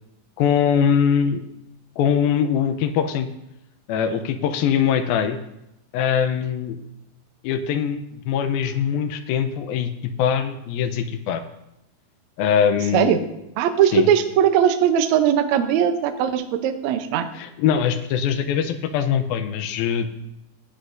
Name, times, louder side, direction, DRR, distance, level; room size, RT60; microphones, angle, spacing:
voice 1, 0.4-1.4 2.0-3.3 3.9-5.4 5.9-6.8 7.4-11.4 12.4-13.2 13.9-14.1 17.3-20.1, left 8 dB, 85° left, 8 dB, 2.5 m, -22 dB
voice 2, 13.6-17.3, right 9 dB, 85° right, 7 dB, 1.6 m, -19 dB
16.0 x 9.9 x 2.6 m, 0.87 s
omnidirectional pair, 4.3 m